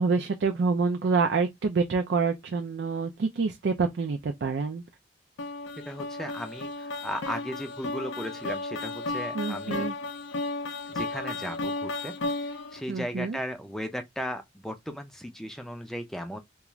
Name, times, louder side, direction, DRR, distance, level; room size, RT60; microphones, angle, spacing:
voice 1, 0.0-4.8 9.3-9.9 12.9-13.4, right 4 dB, 60° right, 0.4 m, -27 dB
sound 1, 5.4-12.8, left 2 dB, 75° left, 0.4 m, -34 dB
voice 2, 5.9-9.9 10.9-16.4, equal, ahead, 0.4 m, -36 dB
2.4 x 2.3 x 2.9 m
head